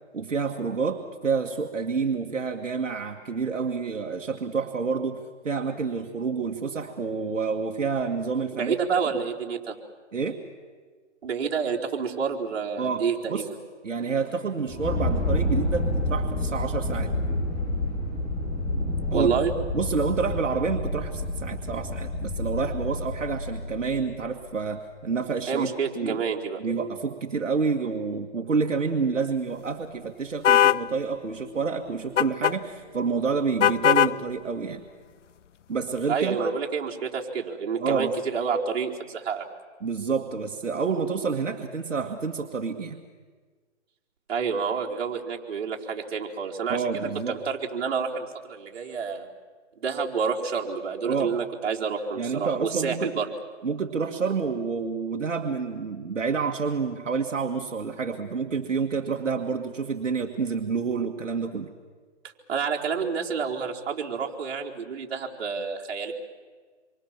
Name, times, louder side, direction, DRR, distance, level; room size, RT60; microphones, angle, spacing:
voice 1, 0.1-8.8 10.1-10.4 12.8-13.0 13.3-13.5 13.8-17.1 19.1-19.3 19.7-26.2 26.6-34.8 35.7-36.5 37.8-38.1 39.8-43.0 46.7-47.4 51.0-51.4 52.2-53.1 53.6-61.7, right 5 dB, 85° right, 3 dB, 2.1 m, -28 dB
voice 2, 8.5-9.8 11.2-13.5 19.1-19.5 25.5-26.6 36.1-39.4 44.3-46.8 47.3-49.3 49.8-53.3 62.5-66.1, right 6 dB, 55° right, -2 dB, 4.2 m, -28 dB
sound 1, 14.7-24.3, left 1 dB, 20° left, 7.0 m, -29 dB
sound 2, 30.4-30.8 32.2-32.6 33.6-34.2, left 9 dB, 75° left, 0.7 m, -19 dB
27.0 x 24.0 x 7.5 m, 1.5 s
hypercardioid pair, 155°, 37 cm